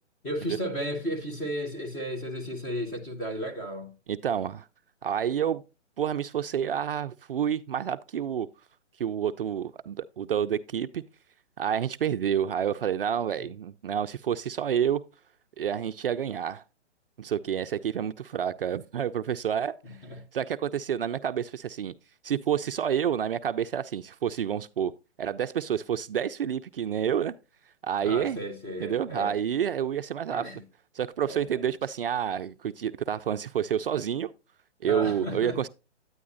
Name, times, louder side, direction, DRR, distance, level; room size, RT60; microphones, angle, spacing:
voice 1, 0.2-3.9 13.4-13.5 19.8-20.3 28.0-29.4 30.3-30.6 31.3-31.6 34.8-35.6, equal, 10° left, 0.7 m, -34 dB
voice 2, 4.1-4.7 5.0-5.6 6.0-8.5 9.0-11.0 11.6-15.0 15.6-16.6 17.2-19.8 20.3-21.9 22.2-24.9 25.2-27.3 27.8-28.4 28.8-30.5 30.9-34.3 34.8-35.7, right 9 dB, 50° right, 0.4 m, -29 dB
9.5 x 9.4 x 2.5 m
hypercardioid pair, 155°, 35 cm